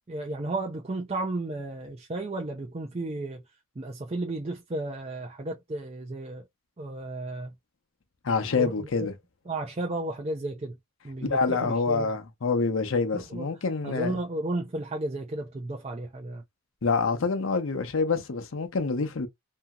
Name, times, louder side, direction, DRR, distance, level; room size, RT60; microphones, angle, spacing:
voice 1, 0.1-3.4 3.8-6.5 6.8-7.5 8.6-9.1 9.5-10.8 11.0-12.1 13.3-13.5 13.8-16.4, right 2 dB, 30° right, 0.4 m, -33 dB
voice 2, 8.2-9.1 11.3-14.1 16.8-19.3, left 4 dB, 70° left, 0.6 m, -26 dB
2.8 x 2.7 x 2.3 m
head